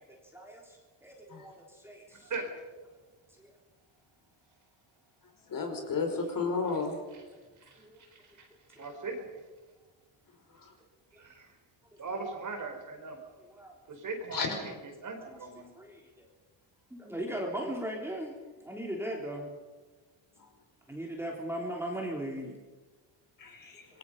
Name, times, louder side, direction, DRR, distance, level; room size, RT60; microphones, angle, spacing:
voice 1, 0.3-2.3 3.4-3.5 7.8-8.0 13.4-13.7 15.3-16.3 16.9-18.3 18.6-19.5 20.9-22.6, right 1 dB, 5° right, -1 dB, 3.6 m, -38 dB
voice 2, 5.5-6.9 14.3-14.5 23.4-23.8, left 4 dB, 40° left, 3 dB, 5.2 m, -32 dB
voice 3, 8.4-9.3 11.2-11.5 12.0-13.2 13.9-15.7, right 3 dB, 40° right, 4 dB, 4.5 m, -39 dB
26.5 x 22.0 x 5.5 m, 1.3 s
cardioid pair, 140°, 48 cm